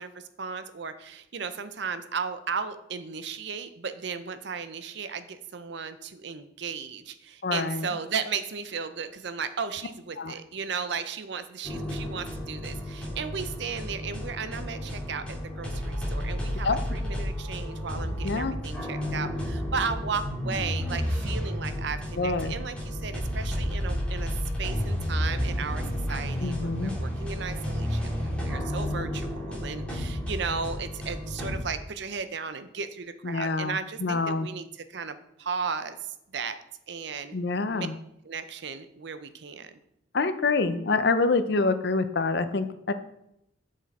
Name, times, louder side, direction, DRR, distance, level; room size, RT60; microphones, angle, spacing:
voice 1, 0.0-24.3 24.6-36.6 36.9-37.3 37.7-37.9 38.2-39.7, right 5 dB, 60° right, 12 dB, 0.6 m, -35 dB
voice 2, 7.4-7.9 10.2-10.3 16.6-16.8 18.2-18.5 22.2-22.5 26.4-26.9 33.2-34.5 37.3-37.9 40.1-42.9, left 3 dB, 55° left, 11 dB, 0.6 m, -26 dB
sound 1, 11.6-31.6, equal, 5° left, 2.7 m, -31 dB
7.4 x 6.6 x 4.1 m, 0.81 s
head